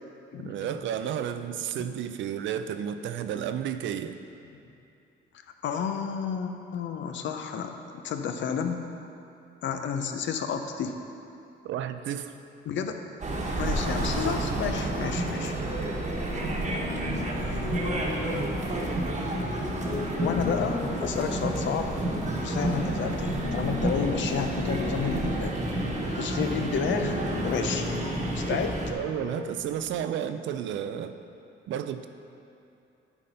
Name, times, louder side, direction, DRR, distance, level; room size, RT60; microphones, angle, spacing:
voice 1, 0.4-4.2 11.6-12.3 28.5-28.6 28.9-31.1 31.7-32.1, right 9 dB, 75° right, 10 dB, 0.5 m, -32 dB
voice 2, 5.6-7.7 8.0-8.8 9.6-10.9 12.6-13.0 13.6-15.6 20.2-21.9 22.4-25.5 26.2-27.9 28.4-28.7, left 7 dB, 70° left, 6 dB, 0.7 m, -31 dB
sound 1, 13.2-28.9, right 2 dB, 35° right, 1.2 m, -30 dB
Piano, 16.3-30.0, left 5 dB, 35° left, 0.6 m, -38 dB
9.8 x 4.2 x 5.4 m, 2.7 s
cardioid pair, 90°, 20 cm